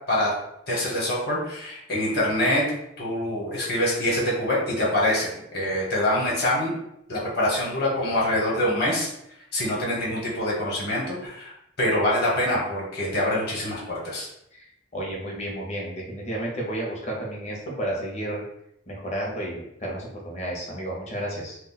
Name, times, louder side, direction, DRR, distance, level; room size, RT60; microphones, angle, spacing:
voice 1, 0.7-2.6 3.0-6.7 7.1-9.1 9.5-14.3, left 1 dB, 50° left, -4 dB, 1.0 m, -25 dB
voice 2, 14.9-18.4 18.9-21.6, right 1 dB, 35° left, -2 dB, 0.7 m, -32 dB
2.3 x 2.2 x 3.9 m, 0.79 s
head